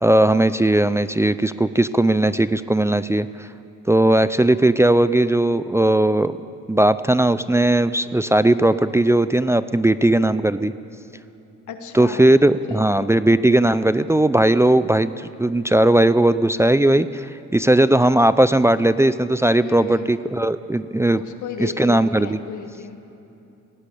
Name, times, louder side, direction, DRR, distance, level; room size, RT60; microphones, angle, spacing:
voice 1, 0.0-3.5 3.9-6.4 6.7-10.7 11.9-21.2 21.6-22.4, right 1 dB, 10° right, 13 dB, 0.5 m, -18 dB
voice 2, 11.7-12.3 12.7-12.8 19.6-20.1 21.1-23.0, left 6 dB, 75° left, 6 dB, 1.9 m, -34 dB
18.5 x 17.0 x 8.5 m, 2.8 s
cardioid pair, 90°, 30 cm